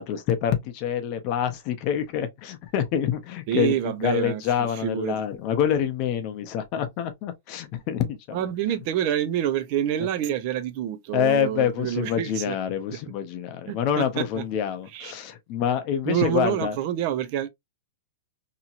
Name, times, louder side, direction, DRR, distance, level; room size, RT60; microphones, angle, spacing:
voice 1, 0.0-8.5 11.1-16.8, left 9 dB, 35° left, 0.5 m, -26 dB
voice 2, 3.5-4.4 4.8-5.2 8.3-12.6 13.7-14.2 14.9-15.1 16.1-17.5, right 10 dB, 40° right, 0.4 m, -27 dB
2.8 x 2.8 x 2.4 m
hypercardioid pair, 160°, 0 cm